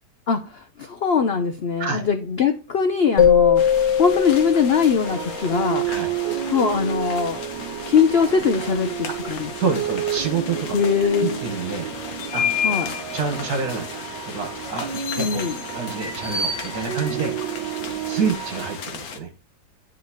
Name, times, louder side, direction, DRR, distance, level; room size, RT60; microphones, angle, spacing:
voice 1, 0.3-3.6 4.0-5.8 6.5-7.4 7.9-9.5 10.7-11.4 12.6-12.9 15.2-15.5, left 6 dB, 85° left, 7 dB, 0.5 m, -21 dB
sound 1, 3.2-5.8, left 8 dB, 20° left, 1.9 m, -20 dB
sound 2, 3.6-19.2, left 6 dB, 60° left, 1.4 m, -33 dB
sound 3, 5.0-18.8, right 11 dB, 80° right, 1.4 m, -31 dB
voice 2, 9.6-10.8 11.2-11.9 12.3-12.5 13.1-15.4 15.7-17.4 18.1-19.3, right 5 dB, 60° right, 4 dB, 2.1 m, -27 dB
9.4 x 4.9 x 3.1 m, 0.35 s
omnidirectional pair, 1.9 m